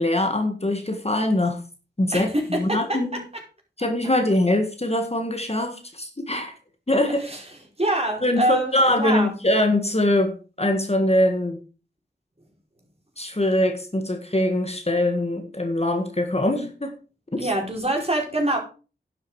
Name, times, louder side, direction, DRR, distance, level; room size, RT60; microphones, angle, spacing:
voice 1, 0.0-1.6 2.0-3.2 3.8-6.5 6.9-7.3 8.2-11.6 13.2-16.9 17.3-17.5, left 1 dB, 35° left, 5 dB, 1.9 m, -23 dB
voice 2, 2.1-3.0 7.2-7.4 7.8-9.3 17.4-18.6, right 1 dB, 35° right, -1 dB, 4.8 m, -25 dB
11.5 x 8.0 x 4.8 m, 0.35 s
wide cardioid pair, 55°, 19 cm